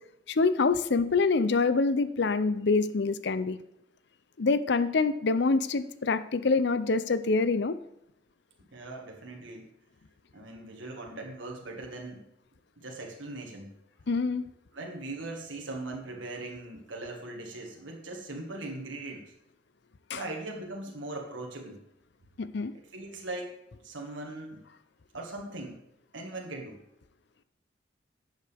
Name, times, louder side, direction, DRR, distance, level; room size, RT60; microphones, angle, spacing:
voice 1, 0.3-3.6 4.4-7.8 14.1-14.4 20.1-20.2 22.4-22.7, left 4 dB, 60° left, 14 dB, 0.6 m, -26 dB
voice 2, 8.7-9.7 10.3-12.3 12.8-13.7 14.7-19.3 20.1-21.8 22.7-23.6 23.8-24.6 25.1-25.8 26.1-26.8, right 2 dB, 75° right, 1 dB, 1.8 m, -40 dB
11.5 x 8.1 x 3.5 m, 0.81 s
head